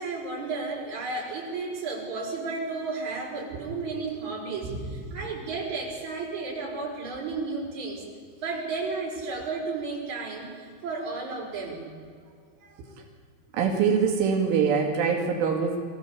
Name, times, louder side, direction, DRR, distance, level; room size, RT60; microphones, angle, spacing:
voice 1, 0.0-8.1 8.4-11.9 12.6-12.8, right 3 dB, 40° right, -3 dB, 6.6 m, -33 dB
voice 2, 13.5-15.8, right 6 dB, 90° right, 0 dB, 5.0 m, -24 dB
24.5 x 16.0 x 8.6 m, 2.1 s
omnidirectional pair, 5.5 m